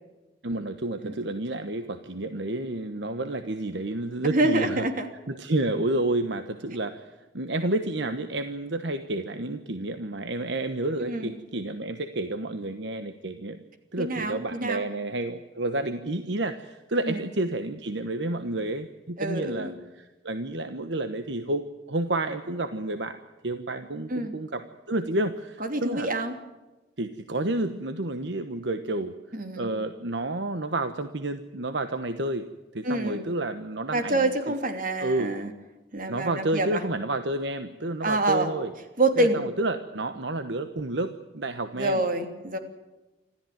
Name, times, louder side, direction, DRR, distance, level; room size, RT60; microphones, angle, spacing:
voice 1, 0.4-4.9 5.3-13.6 13.9-23.2 23.4-26.1 27.0-29.1 29.6-32.5 32.7-34.3 35.0-35.3 36.1-38.7 39.2-42.0, right 2 dB, 70° right, 9 dB, 1.2 m, -30 dB
voice 2, 4.2-5.1 11.0-11.3 14.0-14.8 17.1-17.2 19.2-19.8 24.1-24.4 25.6-26.3 29.3-29.7 32.8-33.2 33.9-35.5 35.9-36.8 38.0-38.5 39.0-39.4 41.8-42.6, right 2 dB, 50° right, 6 dB, 3.0 m, -26 dB
26.5 x 14.0 x 9.4 m, 1.1 s
head